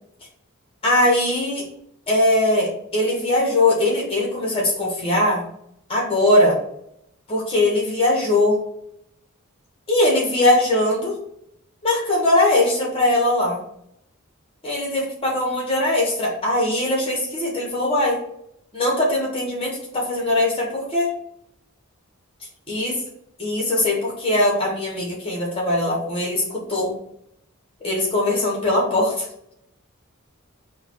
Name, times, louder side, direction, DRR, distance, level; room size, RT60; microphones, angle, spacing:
voice 1, 0.8-1.6 2.1-5.4 5.9-6.6 7.3-8.6 9.9-11.1 11.8-13.6 14.6-18.2 18.7-21.1 22.7-23.0 23.4-26.4 26.7-26.9 27.8-29.2, left 1 dB, 25° left, -2 dB, 1.2 m, -20 dB
4.8 x 2.3 x 3.0 m, 0.74 s
head